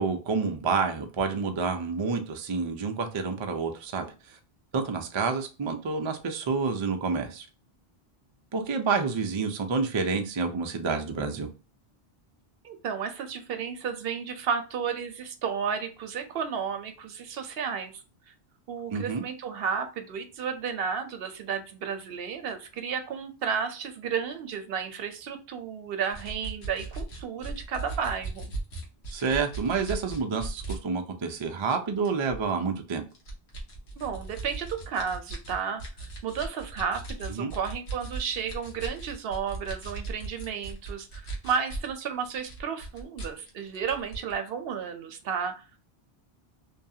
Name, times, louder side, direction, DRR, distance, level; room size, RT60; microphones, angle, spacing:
voice 1, 0.0-4.1 4.7-7.5 8.5-11.5 18.9-19.2 29.1-33.0 37.3-37.5, right 5 dB, 50° right, 0.3 m, -28 dB
voice 2, 12.6-17.9 18.7-28.5 34.0-35.8 36.2-45.8, right 6 dB, 70° right, 0.8 m, -32 dB
sound 1, 26.1-30.8 31.3-31.5 32.0-32.5 33.1-41.9 42.2-44.3, right 3 dB, 85° left, 1.2 m, -37 dB
2.7 x 2.3 x 2.7 m
omnidirectional pair, 1.1 m